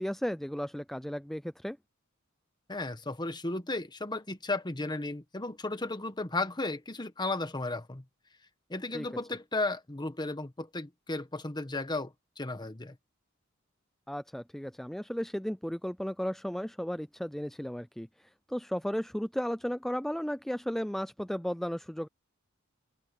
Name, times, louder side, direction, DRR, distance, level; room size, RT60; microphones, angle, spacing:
voice 1, 0.0-1.8 8.9-9.1 14.1-22.1, equal, ahead, 0.3 m, -34 dB
voice 2, 2.7-8.0 8.7-13.0, left 2 dB, 20° left, 1.3 m, -34 dB
head